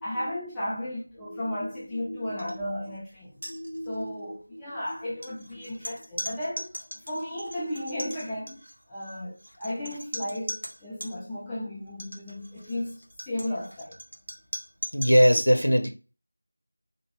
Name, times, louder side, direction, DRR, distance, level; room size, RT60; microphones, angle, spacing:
voice 1, 0.0-3.4 3.9-8.6 8.9-13.0 13.3-14.0, left 1 dB, 5° left, 0.3 m, -34 dB
sound 1, 2.4-2.6 2.8-3.0 3.3-4.1 4.9-11.2 11.9-15.2, equal, 70° right, 0.9 m, -40 dB
voice 2, 3.5-4.1 4.5-4.6 14.9-15.9, equal, 90° left, 0.6 m, -22 dB
2.7 x 2.2 x 2.8 m
figure-of-eight pair, 170°, 0 cm